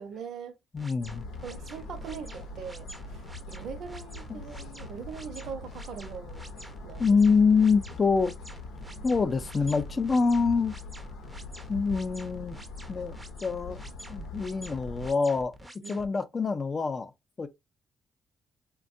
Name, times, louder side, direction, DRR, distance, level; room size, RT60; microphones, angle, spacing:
voice 1, 0.0-0.6 1.4-7.1 15.8-16.1, right 6 dB, 70° right, 0.7 m, -42 dB
voice 2, 0.7-1.3 4.3-4.4 7.0-8.3 9.0-10.8 11.7-12.6 12.9-13.8 14.1-17.1 17.4-17.5, left 5 dB, 35° left, 0.5 m, -25 dB
sound 1, 0.8-16.1, right 1 dB, 10° right, 0.6 m, -48 dB
sound 2, 1.0-15.1, left 2 dB, 90° left, 0.7 m, -42 dB
3.4 x 2.2 x 2.6 m
cardioid pair, 90°, 0 cm